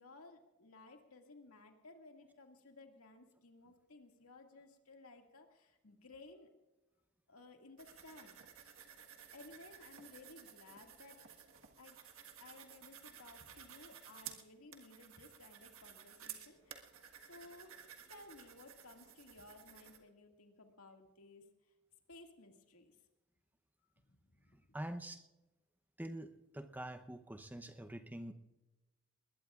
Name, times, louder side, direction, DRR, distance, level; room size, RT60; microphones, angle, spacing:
voice 1, 0.0-6.5 7.3-8.7 9.3-11.2 11.8-12.0 12.4-17.8 18.1-21.5 22.1-23.0 24.1-24.6, left 2 dB, 70° left, 3 dB, 2.1 m, -58 dB
sound 1, 7.8-20.0, right 9 dB, 65° right, 1.5 m, -55 dB
voice 2, 24.7-25.2 26.0-28.3, right 1 dB, 10° right, 8 dB, 0.8 m, -45 dB
20.5 x 20.5 x 2.5 m, 1.0 s
head